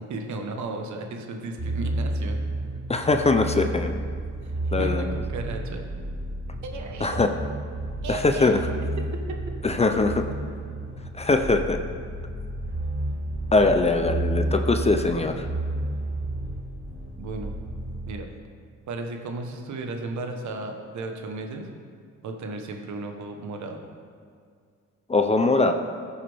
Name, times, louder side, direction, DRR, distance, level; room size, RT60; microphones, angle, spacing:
voice 1, 0.0-2.4 4.4-4.5 4.8-5.8 6.6-7.2 8.0-8.5 9.1-9.4 17.2-17.5 18.1-18.3 18.9-21.7 22.2-23.8, right 3 dB, 70° right, 4 dB, 1.3 m, -34 dB
sound 1, 1.6-18.1, right 1 dB, 45° right, 2.5 m, -31 dB
voice 2, 2.9-4.0 4.7-5.2 7.0-7.3 8.1-8.6 9.6-10.1 11.2-11.8 13.5-15.4 25.1-25.7, left 3 dB, 20° left, 6 dB, 0.6 m, -22 dB
14.5 x 7.1 x 3.6 m, 2.2 s
cardioid pair, 90°, 30 cm